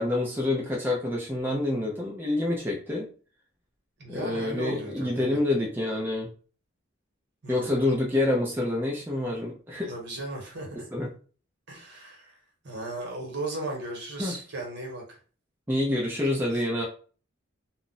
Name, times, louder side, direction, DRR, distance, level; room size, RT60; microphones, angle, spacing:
voice 1, 0.0-3.1 4.1-6.3 7.5-9.9 10.7-11.1 14.2-14.4 15.7-16.8, left 2 dB, 10° right, -2 dB, 0.5 m, -27 dB
voice 2, 4.0-5.4 7.4-7.8 9.9-10.9 11.7-12.4 12.6-15.2 16.5-16.6, right 2 dB, 55° right, 0 dB, 1.1 m, -36 dB
2.4 x 2.0 x 3.9 m, 0.40 s
head